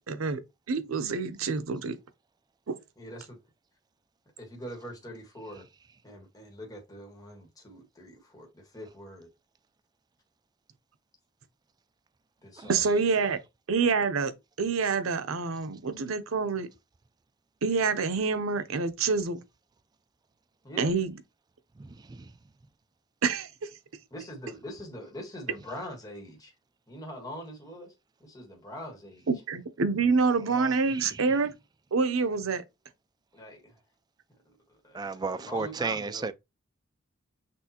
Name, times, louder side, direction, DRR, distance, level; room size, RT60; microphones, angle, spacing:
voice 1, 0.1-0.4 0.7-2.0 2.7-2.8 12.7-13.4 13.7-14.3 14.6-16.7 17.6-19.4 20.8-21.1 23.2-23.5 29.3-31.5 31.9-32.6, right 4 dB, 80° right, 0.6 m, -27 dB
voice 2, 3.0-3.4 4.4-5.6 6.0-9.3 12.4-12.9 20.6-20.9 24.1-26.5 26.9-27.9 28.2-29.3 33.3-33.8 34.4-36.3, equal, 20° left, 1.4 m, -43 dB
voice 3, 34.9-36.3, right 4 dB, 20° right, 0.3 m, -32 dB
6.1 x 2.5 x 2.8 m
head